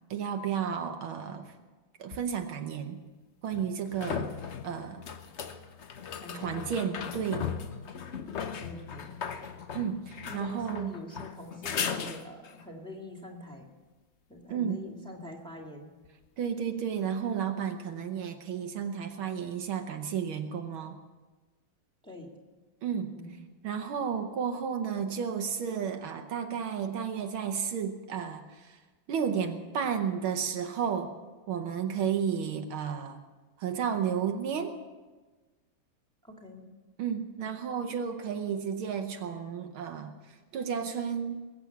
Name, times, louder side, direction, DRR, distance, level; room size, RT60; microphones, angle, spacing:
voice 1, 0.1-1.5 2.0-3.0 3.4-4.3 4.6-5.0 6.3-7.5 9.7-10.9 14.5-14.8 16.4-21.0 22.8-23.2 23.6-28.8 29.1-31.1 31.5-33.2 33.6-34.7 37.0-40.1 40.5-41.5, right 7 dB, 75° right, 6 dB, 1.7 m, -32 dB
sound 1, 2.1-2.2 3.5-12.6 16.0-16.1, left 7 dB, 75° left, 0.6 m, -37 dB
voice 2, 6.1-7.1 8.5-9.1 10.3-13.7 14.3-15.9 22.0-22.3 23.1-23.4 36.2-36.7, left 1 dB, ahead, 1 dB, 1.9 m, -45 dB
21.0 x 8.4 x 7.1 m, 1.3 s
omnidirectional pair, 2.4 m